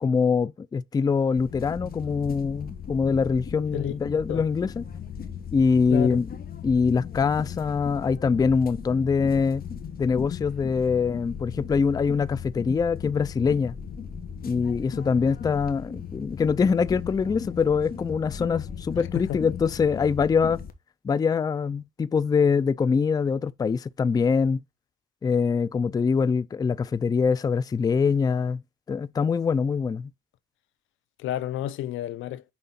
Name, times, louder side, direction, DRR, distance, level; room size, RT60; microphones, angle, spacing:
voice 1, 0.0-4.8 5.5-6.3 6.6-9.7 10.0-13.8 14.5-20.6 21.0-24.6 25.2-28.6 28.9-30.1, left 5 dB, 20° left, 0.3 m, -24 dB
sound 1, 1.4-20.7, left 7 dB, 50° left, 1.1 m, -37 dB
voice 2, 5.9-6.2 19.1-19.4 31.2-32.4, left 12 dB, 85° left, 0.6 m, -30 dB
5.5 x 3.9 x 5.6 m
cardioid pair, 90°, 20 cm